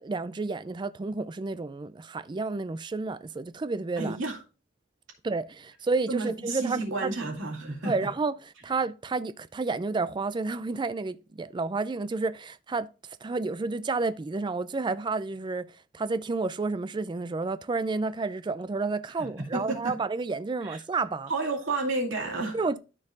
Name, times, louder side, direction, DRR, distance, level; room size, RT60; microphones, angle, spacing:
voice 1, 0.0-4.2 5.2-7.1 7.9-21.3 22.5-22.8, right 3 dB, 25° right, 0.3 m, -31 dB
voice 2, 4.0-4.4 6.1-8.1 19.4-20.0 20.6-20.8 21.3-22.6, right 3 dB, 70° right, 2.4 m, -31 dB
13.0 x 4.6 x 2.5 m
head